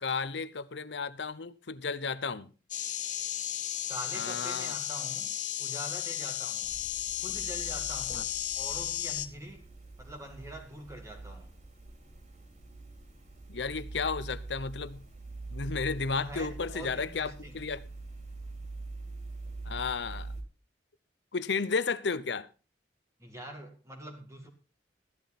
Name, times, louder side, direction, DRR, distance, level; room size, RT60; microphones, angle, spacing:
voice 1, 0.0-2.5 4.1-4.7 8.1-8.2 13.5-15.0 15.5-17.8 19.7-20.3 21.3-22.5, left 4 dB, 75° left, 0.8 m, -33 dB
sound 1, 2.7-9.3, left 12 dB, 45° left, 0.9 m, -34 dB
voice 2, 3.9-5.3 5.6-6.7 7.2-8.3 8.6-9.7 10.0-11.5 16.2-17.6 23.2-24.5, right 1 dB, 15° right, 2.1 m, -44 dB
sound 2, 6.6-20.4, right 3 dB, 45° right, 3.7 m, -44 dB
14.0 x 11.5 x 4.2 m
head